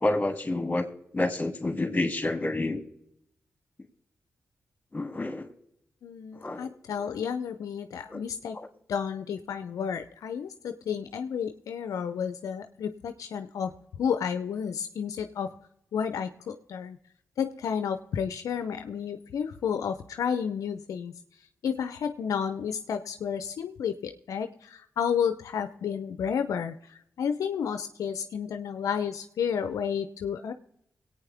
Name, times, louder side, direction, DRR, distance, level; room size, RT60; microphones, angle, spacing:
voice 1, 0.0-2.8 4.9-5.5 6.4-6.7 8.1-8.2 8.6-8.7, left 2 dB, 25° left, 5 dB, 2.6 m, -29 dB
voice 2, 6.0-8.6 8.9-15.6 15.9-17.0 17.4-21.2 21.6-30.5, left 7 dB, 80° left, 9 dB, 0.6 m, -31 dB
22.5 x 8.9 x 3.4 m, 0.78 s
supercardioid pair, 40°, 6 cm